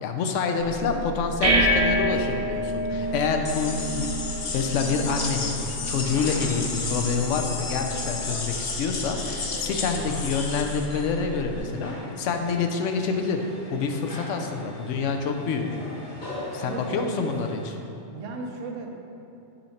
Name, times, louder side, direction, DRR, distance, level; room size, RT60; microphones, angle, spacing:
voice 1, 0.0-4.1 4.5-13.4 13.7-15.7 16.5-17.6, left 5 dB, 75° left, 4 dB, 0.9 m, -27 dB
sound 1, 0.6-11.6, equal, 35° right, 0.9 m, -30 dB
voice 2, 0.6-1.1 14.4-14.7 16.6-17.7 18.1-19.0, right 3 dB, 75° right, 2 dB, 1.0 m, -37 dB
sound 2, 2.9-17.7, left 1 dB, 40° left, 1.4 m, -42 dB
sound 3, 3.4-10.9, left 4 dB, 55° left, 0.4 m, -33 dB
5.6 x 4.4 x 4.1 m, 2.6 s
omnidirectional pair, 1.3 m